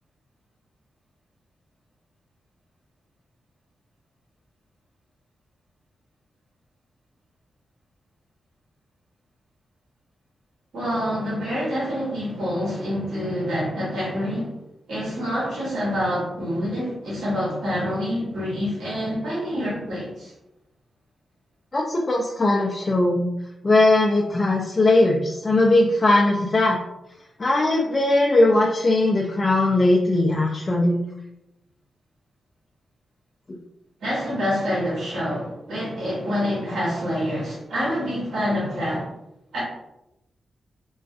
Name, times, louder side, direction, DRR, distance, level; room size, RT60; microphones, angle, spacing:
voice 1, 10.7-14.5 14.9-20.3 34.0-39.1 39.5-39.6, equal, 80° right, -7 dB, 1.0 m, -26 dB
voice 2, 21.7-23.3 23.6-26.8 27.4-31.0, left 2 dB, 40° left, -1 dB, 0.4 m, -19 dB
2.4 x 2.3 x 2.4 m, 0.89 s
supercardioid pair, 50°, 0 cm